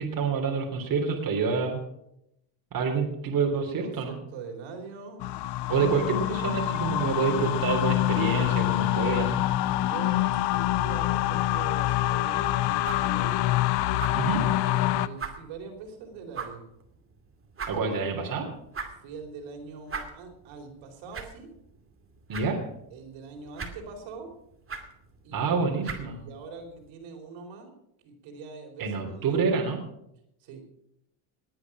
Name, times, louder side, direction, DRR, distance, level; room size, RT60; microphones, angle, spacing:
voice 1, 0.0-1.8 2.7-4.1 5.7-9.4 14.1-14.4 17.7-18.5 22.3-22.6 25.3-26.2 28.8-29.8, right 5 dB, 45° right, 1 dB, 3.2 m, -27 dB
voice 2, 3.5-5.3 9.7-13.4 14.6-16.7 19.0-21.5 22.9-24.3 25.2-25.6 25.9-27.7 28.0-29.4 30.4-30.7, right 4 dB, 70° right, 3 dB, 4.3 m, -43 dB
sound 1, 5.2-15.1, left 15 dB, 55° left, 0.8 m, -26 dB
sound 2, 12.1-26.9, right 5 dB, 25° right, 2.6 m, -43 dB
19.5 x 9.4 x 6.1 m, 0.80 s
supercardioid pair, 110°, 48 cm